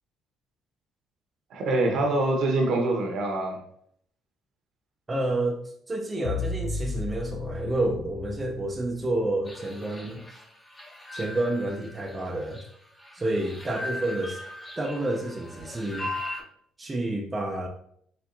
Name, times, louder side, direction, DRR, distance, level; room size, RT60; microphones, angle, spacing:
voice 1, 1.5-3.6, right 2 dB, 70° right, 1 dB, 1.1 m, -25 dB
voice 2, 5.1-10.3 11.1-12.6 13.1-14.4 14.8-16.1 16.8-17.7, right 1 dB, 25° right, 1 dB, 0.6 m, -29 dB
sound 1, 6.2-9.3, left 4 dB, 65° left, 0.5 m, -34 dB
sound 2, 9.5-16.4, left 1 dB, 30° left, 1.2 m, -39 dB
4.5 x 3.3 x 2.6 m, 0.66 s
supercardioid pair, 75°, 0 cm